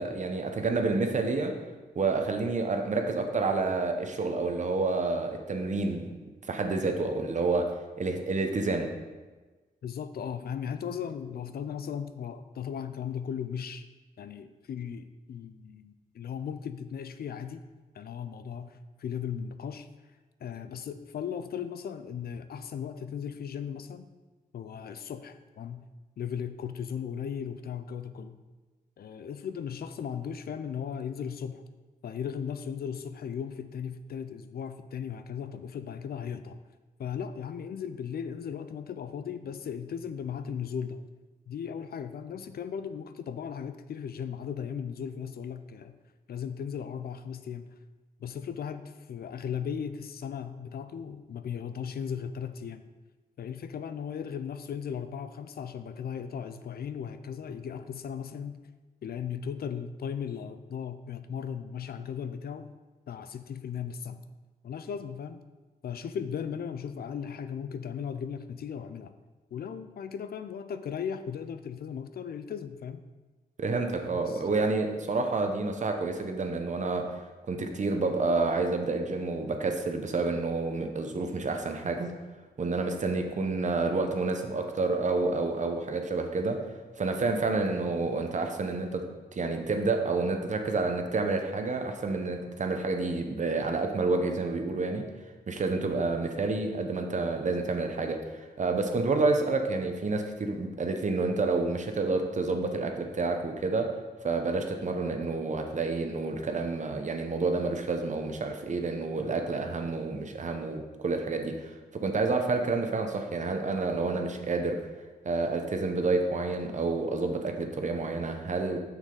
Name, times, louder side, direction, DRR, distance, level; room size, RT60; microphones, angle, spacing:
voice 1, 0.0-1.5 1.9-6.1 6.5-7.7 8.0-8.9 73.6-77.1 77.5-82.1 82.6-86.6 87.0-89.0 89.3-95.0 95.5-103.9 104.2-114.8 115.2-118.8, right 3 dB, 45° right, 4 dB, 0.8 m, -29 dB
voice 2, 9.8-13.9 14.2-17.6 17.9-19.9 20.4-24.1 24.5-25.9 26.2-28.4 29.0-31.6 32.0-36.6 37.0-41.0 41.5-46.0 46.3-47.7 48.2-52.9 53.4-58.6 59.0-62.7 63.1-64.2 64.6-65.4 65.8-69.1 69.5-73.0 73.8-74.4, left 7 dB, 70° left, 11 dB, 0.4 m, -37 dB
6.5 x 6.2 x 3.9 m, 1.3 s
wide cardioid pair, 95°, 17 cm